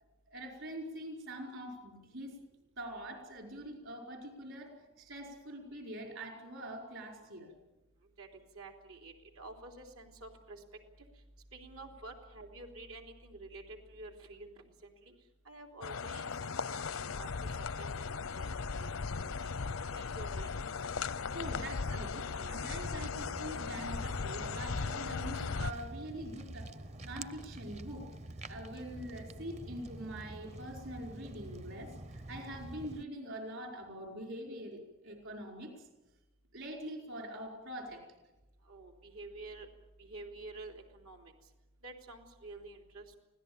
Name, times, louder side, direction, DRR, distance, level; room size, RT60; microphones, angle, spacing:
voice 1, 0.3-2.4 2.8-7.5 21.3-26.7 27.0-28.1 28.5-35.9 36.5-38.0, right 1 dB, 65° right, 2 dB, 5.2 m, -44 dB
voice 2, 8.6-10.6 11.5-14.5 14.8-15.1 15.5-16.3 16.7-17.5 17.8-18.1 18.6-18.9 19.4-19.5 19.9-20.5 38.7-39.7 40.0-41.3 41.8-43.2, right 2 dB, 90° right, 2 dB, 3.5 m, -49 dB
sound 1, 15.8-25.7, left 5 dB, 85° left, 0.7 m, -37 dB
Walk footsteps, 23.1-33.0, right 1 dB, 30° right, 0.7 m, -47 dB
25.0 x 17.0 x 8.9 m, 1.0 s
head